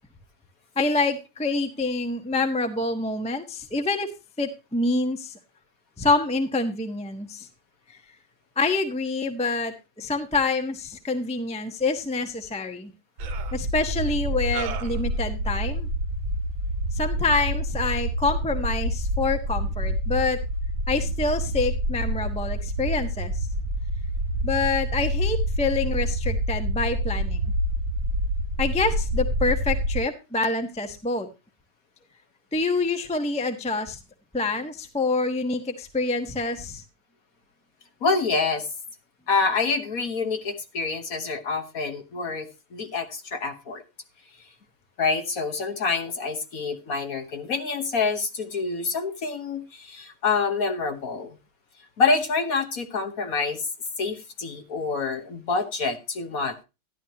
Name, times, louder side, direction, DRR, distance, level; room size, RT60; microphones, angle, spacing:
voice 1, 0.8-4.1 4.4-5.3 6.0-7.5 7.9-8.0 8.6-12.9 13.5-15.9 16.9-20.4 20.9-23.3 24.4-27.5 28.6-31.3 32.5-34.0 34.3-36.8, left 3 dB, 5° left, 7 dB, 0.5 m, -26 dB
sound 1, 12.2-12.3 13.2-13.6 14.5-15.1, right 8 dB, 70° right, 1.6 m, -36 dB
sound 2, 13.2-30.0, equal, 35° right, 2.7 m, -27 dB
voice 2, 38.0-38.7 39.3-43.8 45.0-51.4 52.0-53.7 54.0-56.6, left 4 dB, 50° left, 6 dB, 1.4 m, -27 dB
12.0 x 11.0 x 2.8 m, 0.27 s
omnidirectional pair, 2.3 m